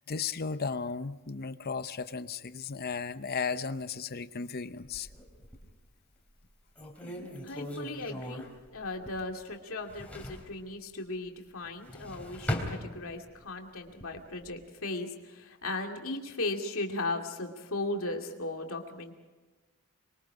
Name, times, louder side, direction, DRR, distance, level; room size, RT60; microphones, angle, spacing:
voice 1, 0.0-5.1, left 5 dB, 45° left, 11 dB, 0.7 m, -35 dB
sound 1, 4.8-5.8 6.3-6.4 6.8-9.4 9.7-10.5 11.7-13.4 13.9-14.5, left 1 dB, 5° left, 3.5 m, -39 dB
voice 2, 7.0-8.4 8.7-19.1, left 2 dB, 65° left, 2 dB, 2.5 m, -37 dB
27.0 x 23.0 x 5.0 m, 1.3 s
head